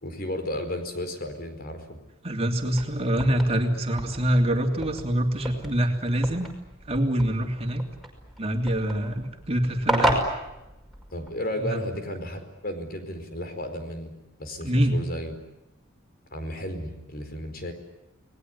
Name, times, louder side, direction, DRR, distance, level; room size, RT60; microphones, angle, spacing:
voice 1, 0.0-2.0 11.1-14.1 14.4-15.3 16.3-17.7, left 1 dB, 45° left, 7 dB, 4.8 m, -33 dB
voice 2, 2.2-6.5 6.9-7.8 8.4-10.2 11.6-11.8 14.6-15.0, right 1 dB, 30° right, 3 dB, 3.0 m, -25 dB
sound 1, 2.6-11.3, right 1 dB, ahead, 5.7 m, -33 dB
29.5 x 20.0 x 9.7 m, 0.94 s
head